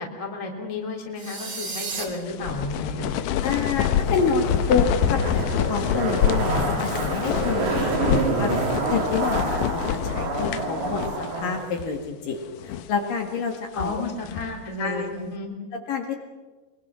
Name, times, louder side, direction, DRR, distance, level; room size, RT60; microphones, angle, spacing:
voice 1, 0.0-3.1 13.7-15.6, left 2 dB, 10° left, 1 dB, 2.4 m, -32 dB
sound 1, 1.2-2.0, right 4 dB, 40° right, 4.0 m, -32 dB
sound 2, 2.0-11.5 11.8-11.9 12.5-13.0 13.5-14.6, left 10 dB, 75° left, 1.9 m, -27 dB
voice 2, 3.4-5.4 5.7-8.5 8.9-11.0 11.4-14.0 14.8-15.1 15.7-16.2, left 5 dB, 60° left, 3 dB, 3.2 m, -28 dB
Zipper (clothing), 4.0-11.6 11.9-12.0, right 3 dB, 65° right, 4.6 m, -27 dB
23.0 x 22.5 x 6.2 m, 1.3 s
omnidirectional pair, 4.7 m